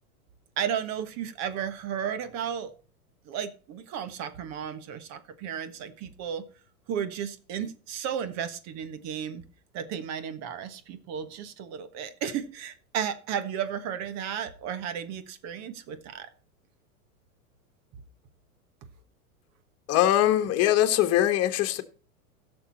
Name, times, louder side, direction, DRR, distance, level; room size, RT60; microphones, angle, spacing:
voice 1, 0.6-2.7 3.3-6.4 6.9-9.4 9.7-16.3, right 8 dB, 35° right, 1.4 m, -34 dB
voice 2, 19.9-21.8, left 12 dB, 35° left, 1.6 m, -22 dB
15.5 x 6.9 x 4.2 m
hypercardioid pair, 105°, 44 cm